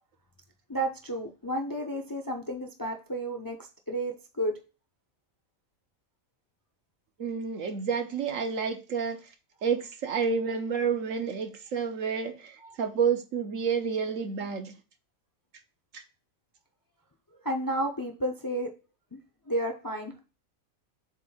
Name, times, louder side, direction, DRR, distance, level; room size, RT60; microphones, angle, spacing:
voice 1, 0.7-3.6 3.9-4.6 17.4-18.7 19.1-19.2 19.5-20.2, right 1 dB, 20° left, 0.6 m, -31 dB
voice 2, 7.2-9.2 9.6-14.8 15.9-16.0, right 6 dB, 70° right, 1.3 m, -29 dB
7.5 x 2.7 x 5.6 m
omnidirectional pair, 1.5 m